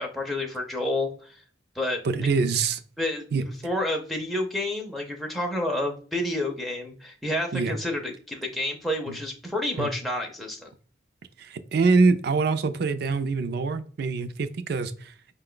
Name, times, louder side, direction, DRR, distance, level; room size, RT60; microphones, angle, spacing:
voice 1, 0.0-1.4 1.8-2.3 3.0-3.2 3.6-10.7, left 1 dB, ahead, 0.5 m, -29 dB
voice 2, 2.0-2.8 3.3-3.4 7.5-7.8 9.1-9.2 9.8-9.9 11.4-15.1, right 4 dB, 60° right, 0.4 m, -24 dB
5.1 x 2.2 x 3.7 m
head